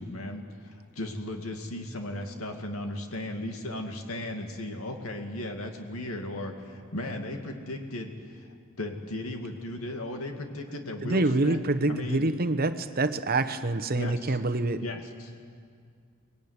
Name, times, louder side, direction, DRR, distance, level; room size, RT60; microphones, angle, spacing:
voice 1, 0.0-8.5 8.8-11.6 11.9-12.2 14.0-14.4 14.8-15.3, left 1 dB, 90° left, 4 dB, 2.4 m, -36 dB
voice 2, 11.0-14.8, right 2 dB, 45° right, 11 dB, 1.1 m, -26 dB
23.5 x 20.5 x 9.7 m, 2.1 s
head